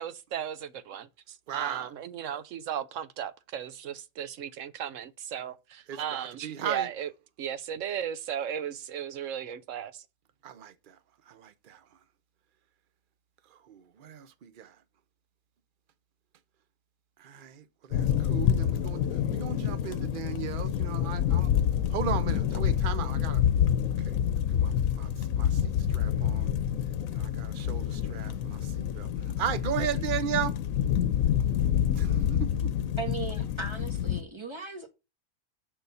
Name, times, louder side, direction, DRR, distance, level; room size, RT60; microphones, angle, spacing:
voice 1, 0.0-7.1 7.4-10.0, right 9 dB, 70° right, 1.0 m, -36 dB
voice 2, 1.5-1.9 5.9-6.9 10.4-11.0 11.3-11.8 13.7-14.7 17.2-21.5 21.9-23.4 24.1-24.2 24.5-24.7 25.0-26.5 27.1-29.1 29.4-30.5 31.9-32.8, right 9 dB, 50° right, 0.7 m, -36 dB
sound 1, 17.9-34.2, left 9 dB, 80° left, 1.1 m, -27 dB
voice 3, 33.0-34.9, right 4 dB, 20° right, 1.5 m, -37 dB
6.7 x 5.7 x 6.8 m
omnidirectional pair, 1.4 m